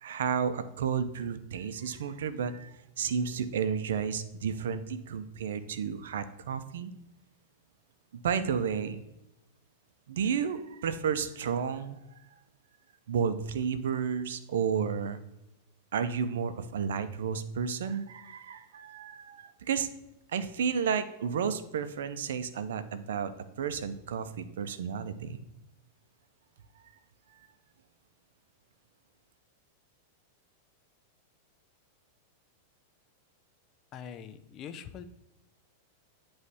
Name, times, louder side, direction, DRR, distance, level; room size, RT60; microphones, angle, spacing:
voice 1, 0.0-6.9 8.1-9.0 10.1-12.0 13.1-15.2 15.9-19.9 20.3-23.3 23.6-25.4, right 7 dB, 80° right, 12 dB, 0.6 m, -32 dB
voice 2, 33.9-35.1, left 8 dB, 35° left, 10 dB, 0.5 m, -43 dB
9.5 x 3.2 x 4.1 m, 0.88 s
supercardioid pair, 135°, 0 cm